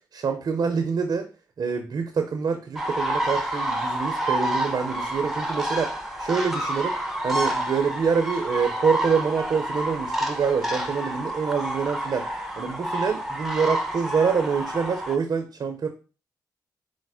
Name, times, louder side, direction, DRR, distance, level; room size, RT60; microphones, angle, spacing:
voice 1, 0.1-1.3 1.6-5.9 6.2-7.0 7.2-12.3 12.6-15.9, right 6 dB, 60° right, 5 dB, 0.6 m, -26 dB
sound 1, 2.8-15.2, right 1 dB, 5° right, 0.9 m, -28 dB
4.9 x 2.0 x 4.7 m, 0.34 s
cardioid pair, 55°, 8 cm